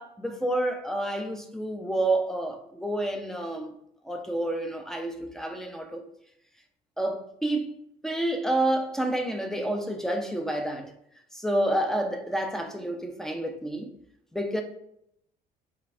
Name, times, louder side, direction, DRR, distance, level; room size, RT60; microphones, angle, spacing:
voice 1, 0.0-3.8 4.0-6.0 7.0-7.7 8.0-10.9 11.3-13.9 14.3-14.6, right 1 dB, 5° left, 0.5 m, -29 dB
3.6 x 3.3 x 3.4 m
cardioid pair, 110°, 17 cm